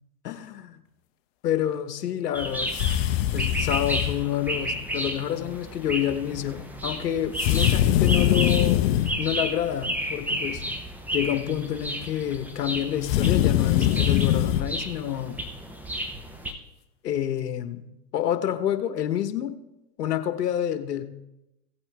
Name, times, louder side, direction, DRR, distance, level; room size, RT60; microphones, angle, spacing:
voice 1, 0.2-0.8 1.4-2.7 3.3-8.8 9.2-10.6 11.1-15.4 17.0-17.8 18.1-19.5 20.0-21.0, left 10 dB, 65° left, 9 dB, 1.3 m, -28 dB
sound 1, 2.3-16.5, equal, 5° right, 0.8 m, -33 dB
sound 2, 2.7-4.2 7.4-9.2 13.0-14.7, left 12 dB, 40° left, 0.8 m, -22 dB
16.0 x 8.6 x 3.4 m, 0.93 s
hypercardioid pair, 110°, 50 cm